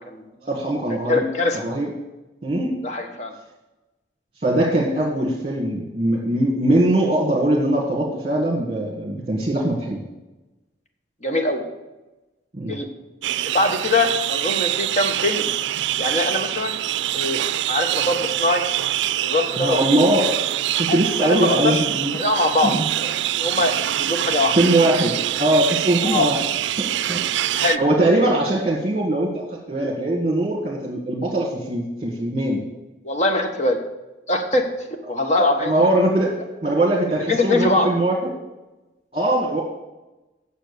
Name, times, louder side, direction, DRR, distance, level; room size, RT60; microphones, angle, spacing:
voice 1, 0.4-1.2 1.6-1.9 2.4-2.8 4.4-10.0 12.5-12.7 19.5-20.3 20.8-22.2 22.6-22.8 24.5-25.1 25.4-26.4 26.8-27.2 27.5-32.6 35.4-36.3 36.6-38.3 39.1-39.6, right 1 dB, 30° right, -3 dB, 1.6 m, -21 dB
voice 2, 1.1-1.6 2.8-3.3 11.2-11.6 12.7-12.9 13.5-15.5 16.0-16.8 17.1-17.4 17.7-18.6 19.2-19.8 20.9-21.8 22.2-23.7 24.0-24.6 26.0-26.3 27.5-27.8 33.0-33.8 34.3-34.6 35.1-35.7 37.3-37.9, left 2 dB, 40° left, 4 dB, 1.3 m, -22 dB
sound 1, 13.2-27.8, right 13 dB, 80° right, 0.4 m, -25 dB
9.1 x 7.0 x 6.8 m, 1.1 s
head